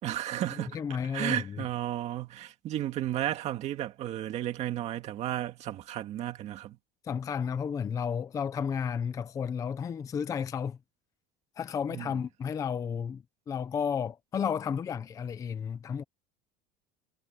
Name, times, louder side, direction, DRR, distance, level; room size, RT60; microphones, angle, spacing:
voice 1, 0.0-0.8 1.1-6.8 11.9-12.1, right 12 dB, 35° right, 2.0 m, -33 dB
voice 2, 0.7-1.6 7.0-10.8 11.6-16.0, left 7 dB, 15° left, 0.6 m, -32 dB
cardioid pair, 175°, 19 cm